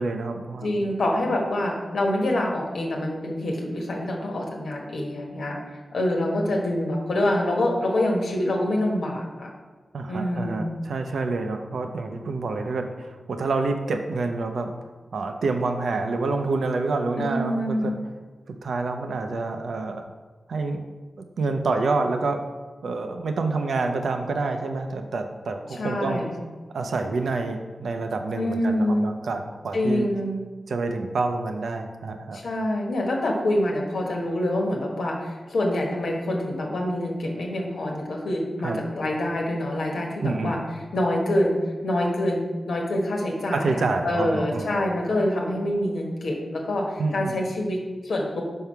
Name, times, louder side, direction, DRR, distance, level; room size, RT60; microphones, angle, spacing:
voice 1, 0.0-0.9 9.9-14.7 15.1-18.0 18.6-20.1 20.5-20.8 21.2-22.4 22.8-26.2 26.7-30.1 30.7-32.4 38.6-38.8 40.2-40.5 43.5-44.8 47.0-47.3, right 3 dB, 85° right, 5 dB, 0.6 m, -27 dB
voice 2, 0.6-9.5 10.1-10.7 17.2-18.0 25.7-26.4 28.4-29.1 29.7-30.4 32.3-40.6 40.9-41.6 41.8-48.4, left 1 dB, 90° left, 0 dB, 1.2 m, -26 dB
5.5 x 4.6 x 5.6 m, 1.3 s
wide cardioid pair, 75°, 0 cm